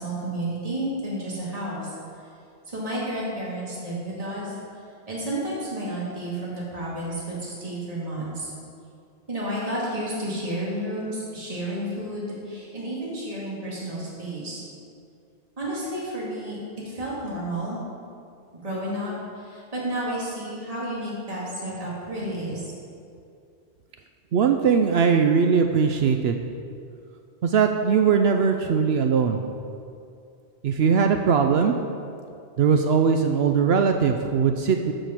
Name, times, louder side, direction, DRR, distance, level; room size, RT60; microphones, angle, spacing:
voice 1, 0.0-1.9 2.7-4.6 5.1-8.5 9.3-14.6 15.6-16.6 16.8-17.8 18.6-22.6, right 1 dB, 35° right, -7 dB, 2.3 m, -31 dB
voice 2, 24.3-26.4 27.4-29.4 30.6-31.7 32.6-34.9, right 6 dB, 70° right, 5 dB, 0.8 m, -20 dB
13.5 x 5.2 x 5.8 m, 2.5 s
omnidirectional pair, 1.1 m